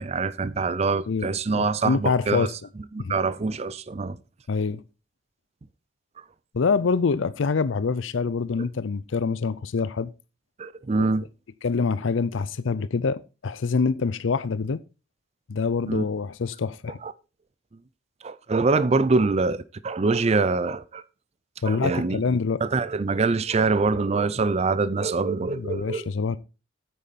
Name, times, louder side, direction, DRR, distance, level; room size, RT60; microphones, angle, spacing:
voice 1, 0.0-2.5 2.9-4.2 10.6-11.3 15.9-16.0 17.0-17.1 18.2-21.0 21.6-22.2 22.6-26.1, right 3 dB, 35° right, 0.5 m, -24 dB
voice 2, 1.1-2.5 3.0-3.1 4.5-4.8 6.5-10.1 11.0-11.1 11.6-14.8 15.5-17.0 21.6-22.6 25.4-26.4, left 4 dB, 80° left, 0.5 m, -25 dB
9.2 x 8.4 x 4.1 m
head